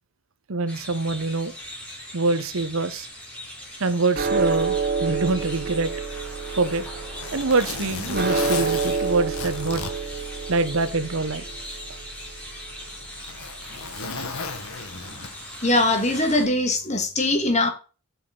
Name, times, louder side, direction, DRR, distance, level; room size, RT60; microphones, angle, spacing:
voice 1, 0.5-1.5 2.1-3.1 3.8-5.9 6.6-6.8 7.3-9.8 10.5-11.4 13.8-13.9, right 3 dB, 65° right, 13 dB, 0.8 m, -24 dB
sound 1, 0.7-16.4, equal, 5° left, 3.4 m, -40 dB
sound 2, 4.1-14.6, right 5 dB, 40° right, 1.1 m, -29 dB
Zipper (clothing), 6.5-10.9 11.3-11.4 12.2-15.7 16.8-17.0, left 4 dB, 75° left, 1.4 m, -35 dB
voice 2, 15.6-17.7, left 2 dB, 30° left, 6 dB, 1.6 m, -21 dB
7.2 x 7.0 x 3.8 m, 0.34 s
head